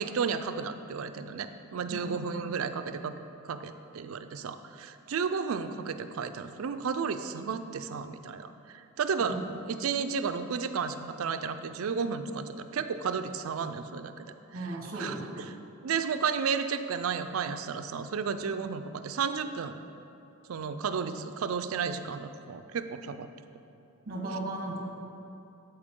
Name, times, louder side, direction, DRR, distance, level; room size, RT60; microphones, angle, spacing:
voice 1, 0.0-3.1 3.4-9.4 9.7-14.3 15.0-15.1 15.8-19.8 20.5-23.3, right 6 dB, 70° right, 10 dB, 0.4 m, -32 dB
voice 2, 14.5-15.5 24.1-24.8, right 2 dB, 45° right, -1 dB, 1.3 m, -36 dB
12.5 x 4.4 x 3.7 m, 2.7 s
head